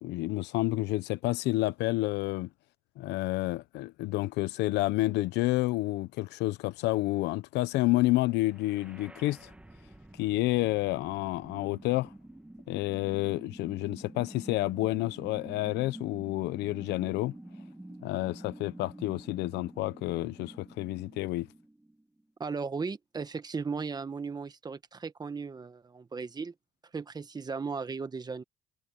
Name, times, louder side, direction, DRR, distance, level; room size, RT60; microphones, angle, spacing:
voice 1, 0.0-2.5 3.0-9.5 10.2-12.1 12.7-17.3 18.0-21.5, left 18 dB, 85° left, 0.9 m, -29 dB
sound 1, 8.3-22.3, right 1 dB, 5° right, 1.9 m, -48 dB
voice 2, 22.4-26.5 26.9-28.4, right 5 dB, 25° right, 1.3 m, -36 dB
cardioid pair, 110°, 17 cm